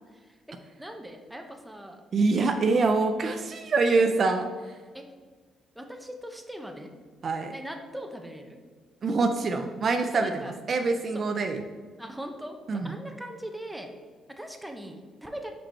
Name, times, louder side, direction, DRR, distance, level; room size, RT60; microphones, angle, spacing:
voice 1, 0.1-2.0 4.9-5.1 5.7-6.9 7.5-8.6 10.1-10.6 11.1-11.2 12.0-13.9 14.3-15.5, equal, 5° right, 4 dB, 0.7 m, -40 dB
voice 2, 2.1-4.8 7.2-7.5 9.0-10.3 10.7-11.6 12.7-12.9, right 3 dB, 50° right, 6 dB, 0.4 m, -25 dB
5.0 x 4.5 x 4.3 m, 1.5 s
cardioid pair, 90°, 0 cm